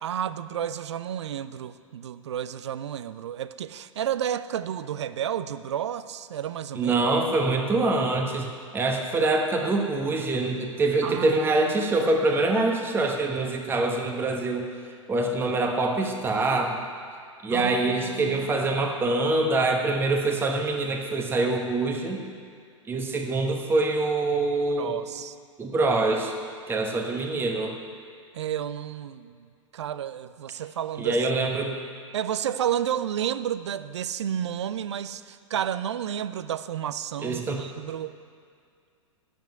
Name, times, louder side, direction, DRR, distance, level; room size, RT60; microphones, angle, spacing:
voice 1, 0.0-6.9 11.0-11.7 17.5-18.7 24.8-25.4 28.3-31.2 32.1-38.2, right 10 dB, 60° right, 14 dB, 0.5 m, -31 dB
voice 2, 6.7-8.5 8.7-14.7 15.1-16.8 17.4-22.2 22.9-24.9 25.6-26.3 26.7-27.7 31.0-31.7 37.2-37.6, right 2 dB, 15° right, 2 dB, 1.1 m, -25 dB
9.0 x 7.7 x 9.1 m, 2.3 s
figure-of-eight pair, 100°, 17 cm